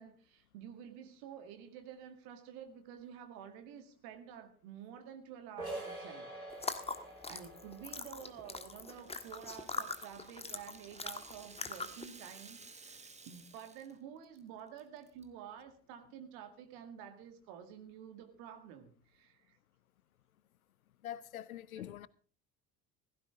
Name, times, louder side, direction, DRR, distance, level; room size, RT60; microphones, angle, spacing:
voice 1, 0.0-6.8 7.3-19.6, right 9 dB, 55° right, 2.1 m, -50 dB
sound 1, 5.6-11.1, right 2 dB, 85° right, 3.2 m, -48 dB
sound 2, 6.5-12.1, left 3 dB, 15° left, 1.5 m, -42 dB
Rattle (instrument), 8.2-14.0 14.2-14.4 14.8-15.2, right 4 dB, 15° right, 1.7 m, -56 dB
voice 2, 21.0-22.1, left 11 dB, 75° left, 0.6 m, -44 dB
16.5 x 15.0 x 3.6 m
figure-of-eight pair, 60°, 42 cm